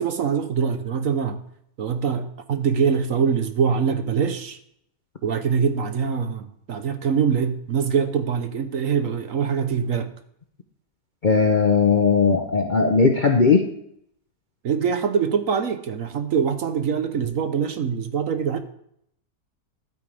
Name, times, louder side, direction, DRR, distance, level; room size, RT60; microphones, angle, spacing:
voice 1, 0.0-1.4 1.8-4.6 5.2-10.1 14.6-18.6, right 6 dB, 60° right, 9 dB, 1.1 m, -23 dB
voice 2, 11.2-13.7, left 4 dB, 45° left, 3 dB, 0.7 m, -18 dB
12.0 x 9.0 x 3.4 m, 0.70 s
omnidirectional pair, 1.7 m